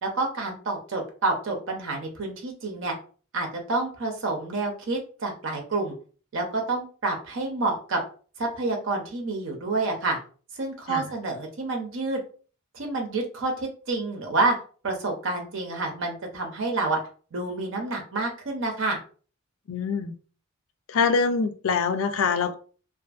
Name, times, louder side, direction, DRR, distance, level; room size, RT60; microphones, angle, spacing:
voice 1, 0.0-3.0 3.3-6.0 6.3-8.0 8.4-10.2 10.6-12.2 12.7-14.6 14.8-17.0 17.3-19.0, right 3 dB, 65° right, 0.6 m, -28 dB
voice 2, 19.7-20.1 20.9-22.5, left 5 dB, 75° left, 0.4 m, -24 dB
2.5 x 2.4 x 2.4 m
head